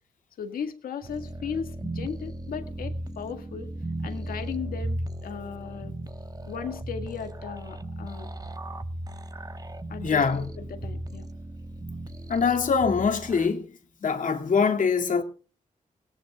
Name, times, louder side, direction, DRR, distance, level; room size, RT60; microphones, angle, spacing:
voice 1, 0.4-3.7 4.0-6.0 6.5-8.3 9.9-11.3, left 7 dB, 90° left, 1.8 m, -36 dB
sound 1, 1.0-13.5, right 1 dB, 25° right, 1.2 m, -36 dB
voice 2, 10.0-10.4 12.3-13.7 14.0-15.2, left 5 dB, 65° left, 2.4 m, -23 dB
21.5 x 17.5 x 2.4 m
cardioid pair, 65°, 15 cm